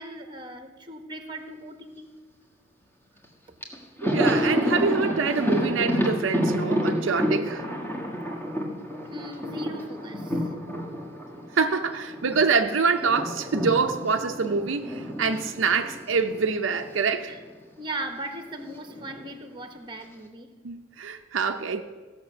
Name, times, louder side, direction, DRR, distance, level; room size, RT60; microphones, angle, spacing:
voice 1, 0.0-2.1 9.0-10.6 17.3-17.4 17.8-20.5, right 1 dB, 25° right, 6 dB, 1.1 m, -38 dB
Thunder, 3.2-3.3 3.6-12.4 12.7-17.0 17.3-17.4 18.6-19.3, equal, 10° left, 1.5 m, -29 dB
voice 2, 4.0-7.6 11.5-17.3 20.6-21.8, right 5 dB, 70° right, 5 dB, 0.6 m, -25 dB
16.0 x 6.7 x 6.2 m, 1.4 s
head